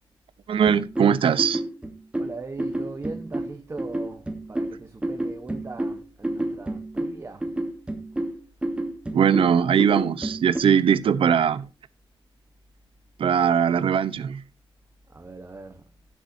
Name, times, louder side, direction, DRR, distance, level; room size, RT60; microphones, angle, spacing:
voice 1, 0.5-1.6 9.1-11.7 13.2-14.4, right 7 dB, 75° right, 0.8 m, -20 dB
sound 1, 0.7-10.6, right 1 dB, 10° right, 1.5 m, -30 dB
voice 2, 2.2-7.5 15.1-15.9, right 3 dB, 30° right, 1.1 m, -40 dB
16.0 x 7.4 x 2.7 m
wide cardioid pair, 140°, 9 cm